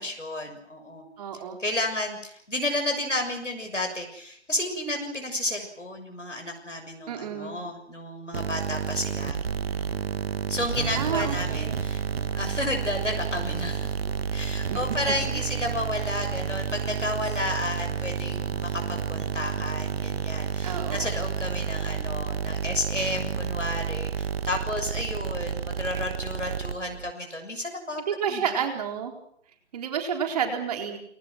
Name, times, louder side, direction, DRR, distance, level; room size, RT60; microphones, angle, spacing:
voice 1, 0.0-1.0 1.6-9.4 10.5-12.0 12.3-13.9 14.3-28.0 28.3-28.6, left 1 dB, 85° left, 4 dB, 6.6 m, -32 dB
voice 2, 1.2-1.6 7.1-7.6 10.9-11.8 14.7-14.8 15.3-15.4 20.6-21.1 28.1-29.1 29.7-31.0, right 7 dB, 35° right, 4 dB, 4.1 m, -30 dB
sound 1, 8.3-27.1, right 6 dB, 55° right, 1.3 m, -30 dB
29.0 x 24.0 x 6.2 m, 0.70 s
figure-of-eight pair, 140°, 36 cm